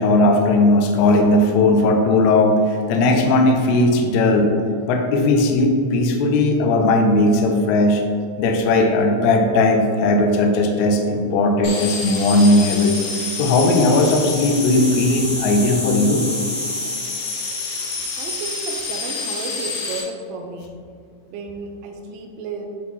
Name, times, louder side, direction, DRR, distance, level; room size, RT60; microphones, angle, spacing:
voice 1, 0.0-4.5 4.8-8.0 8.4-12.9 13.4-16.2, left 2 dB, 80° left, 3 dB, 1.6 m, -17 dB
sound 1, 11.6-20.0, left 3 dB, 65° left, 2.0 m, -27 dB
voice 2, 18.2-20.8 21.3-22.7, right 3 dB, 80° right, 3 dB, 2.2 m, -33 dB
9.7 x 3.7 x 3.1 m, 2.2 s
omnidirectional pair, 4.1 m